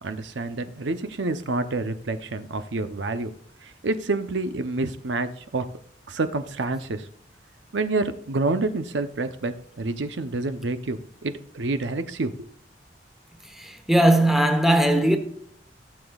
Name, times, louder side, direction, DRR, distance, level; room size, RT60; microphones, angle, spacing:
voice 1, 0.0-3.3 3.6-5.7 6.1-7.1 7.7-12.5, right 3 dB, 85° right, 0.7 m, -28 dB
voice 2, 13.6-15.2, right 1 dB, ahead, 1.1 m, -19 dB
16.0 x 7.0 x 2.4 m
head